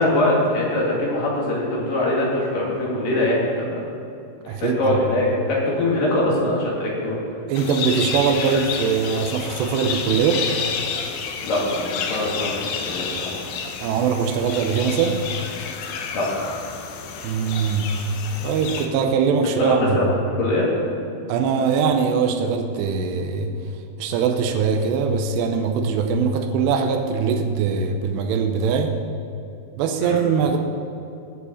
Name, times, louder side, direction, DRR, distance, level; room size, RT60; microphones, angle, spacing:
voice 1, 0.0-3.8 4.4-7.2 11.4-13.5 16.1-16.5 19.6-20.0 20.4-20.7 30.0-30.2, left 1 dB, 50° left, -5 dB, 3.5 m, -23 dB
voice 2, 4.5-5.0 7.5-10.4 13.8-15.2 17.2-18.0 18.4-20.1 21.3-23.5 24.0-28.9 29.8-30.6, right 6 dB, 90° right, 4 dB, 2.5 m, -21 dB
sound 1, 7.5-18.9, left 6 dB, 80° left, 2.3 m, -30 dB
19.0 x 7.2 x 4.3 m, 2.8 s
omnidirectional pair, 5.9 m